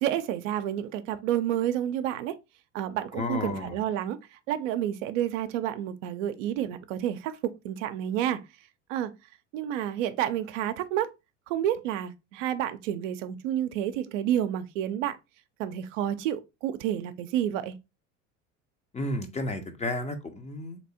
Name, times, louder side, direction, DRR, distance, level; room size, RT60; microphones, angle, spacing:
voice 1, 0.0-2.3 2.7-8.4 8.9-9.1 9.5-11.1 11.5-15.2 15.6-17.8, right 11 dB, 70° right, 0.5 m, -30 dB
voice 2, 3.1-3.8 18.9-20.8, left 2 dB, 15° left, 0.5 m, -32 dB
3.3 x 2.9 x 2.7 m
hypercardioid pair, 85°, 39 cm